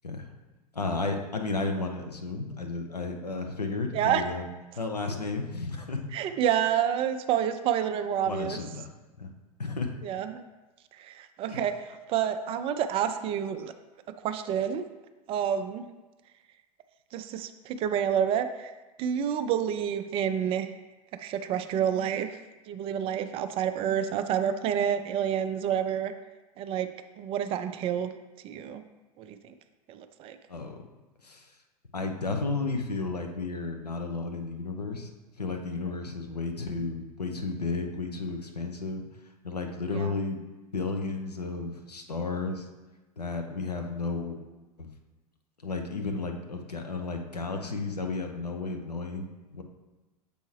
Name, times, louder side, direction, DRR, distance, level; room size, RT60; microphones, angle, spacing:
voice 1, 0.7-4.4 4.8-6.1 8.2-8.9 9.2-9.3 9.6-9.9 11.5-11.6 30.5-30.8 31.2-31.5 31.9-35.1 35.4-39.0 39.4-40.4 40.7-42.7 43.2-44.4 44.8-44.9 45.6-49.6, left 3 dB, 85° left, 4 dB, 0.7 m, -33 dB
voice 2, 6.1-8.6 10.0-10.4 11.0-11.7 12.1-13.7 14.2-14.9 15.3-15.9 17.1-18.7 19.0-20.7 21.2-22.4 22.7-26.1 26.6-26.9 27.2-28.1 28.4-28.8 29.2-29.5 29.9-30.4 39.9-40.1, right 9 dB, 30° right, 9 dB, 0.4 m, -28 dB
6.9 x 4.4 x 3.2 m, 1.1 s
figure-of-eight pair, 90°, 20 cm